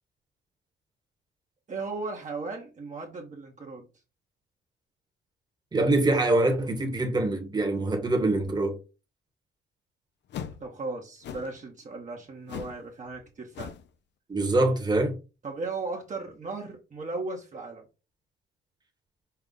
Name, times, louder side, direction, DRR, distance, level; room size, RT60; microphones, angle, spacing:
voice 1, 1.7-3.9 10.6-13.7 15.4-17.8, right 3 dB, 40° right, 1.1 m, -36 dB
voice 2, 5.7-8.8 14.3-15.2, right 2 dB, 20° right, 1.3 m, -24 dB
sound 1, 10.3-10.6 11.2-11.6 12.5-12.8 13.1-13.3 13.5-13.9, left 8 dB, 60° left, 0.6 m, -39 dB
5.6 x 2.4 x 3.8 m
cardioid pair, 90°, 20 cm